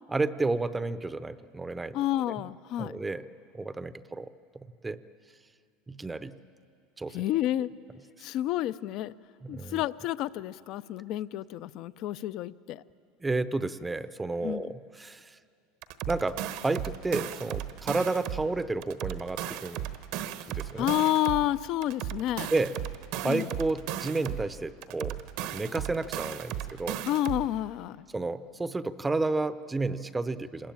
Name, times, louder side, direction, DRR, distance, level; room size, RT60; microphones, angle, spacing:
voice 1, 0.1-2.0 2.3-2.4 2.8-3.3 3.5-4.3 4.5-5.0 5.9-6.3 7.0-7.2 9.4-9.8 13.2-15.4 16.1-19.9 20.5-20.9 22.5-22.8 23.1-25.2 25.5-27.0 28.1-30.7, right 3 dB, 10° right, 14 dB, 0.6 m, -31 dB
voice 2, 1.9-3.0 7.1-7.7 8.2-9.1 9.5-12.8 14.4-14.7 20.8-22.5 23.2-23.5 27.1-28.1, left 13 dB, 55° left, 17 dB, 0.5 m, -30 dB
sound 1, 15.8-18.5 18.8-21.5 21.8-24.5 24.8-27.5, right 11 dB, 65° right, 1.1 m, -36 dB
26.0 x 20.5 x 8.9 m, 2.4 s
supercardioid pair, 125°, 0 cm